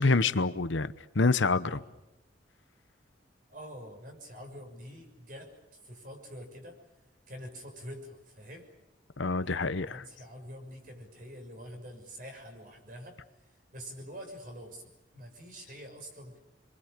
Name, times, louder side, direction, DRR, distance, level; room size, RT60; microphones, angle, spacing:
voice 1, 0.0-1.8 9.2-10.0, left 3 dB, 80° left, 1.0 m, -27 dB
voice 2, 3.5-5.6 5.8-6.8 7.3-8.7 9.4-13.2 13.7-14.8 15.1-16.4, equal, 45° right, 6.4 m, -46 dB
28.0 x 23.5 x 6.8 m
head